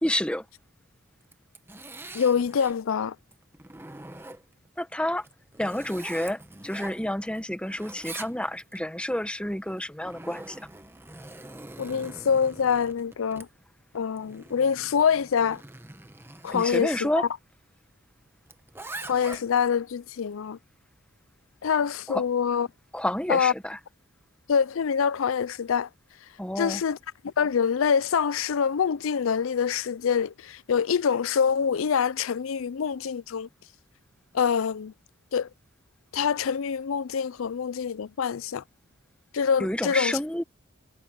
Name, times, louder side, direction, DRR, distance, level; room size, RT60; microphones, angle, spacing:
voice 1, 0.0-0.4 4.8-5.3 5.6-10.6 16.5-17.2 22.1-22.2 22.9-23.8 26.4-26.8 39.6-40.4, left 1 dB, 5° left, 1.2 m, -29 dB
Zipper (clothing), 1.2-2.8 3.3-4.7 5.2-7.4 7.7-8.8 9.7-16.8 18.5-19.7, right 2 dB, 10° right, 1.0 m, -44 dB
voice 2, 2.1-3.2 11.8-13.5 13.9-15.6 16.4-17.3 19.0-20.6 21.6-22.7 23.3-23.5 24.5-25.9 26.6-27.0 27.2-33.5 34.3-34.9 35.3-35.5 36.1-38.6 39.3-40.2, left 7 dB, 70° left, 0.4 m, -25 dB
head